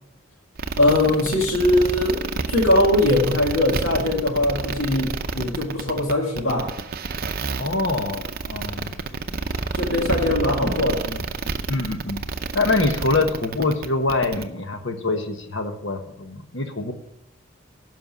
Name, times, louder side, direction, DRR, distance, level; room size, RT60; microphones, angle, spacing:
sound 1, 0.6-14.4, right 4 dB, 45° right, 0.6 m, -29 dB
voice 1, 0.8-2.2 2.5-6.7 9.7-11.0, left 1 dB, 80° left, -1 dB, 2.0 m, -21 dB
voice 2, 7.6-8.9 10.3-11.2 11.7-12.2 12.5-16.9, left 3 dB, 65° left, 6 dB, 1.2 m, -25 dB
11.0 x 5.7 x 7.4 m, 0.79 s
head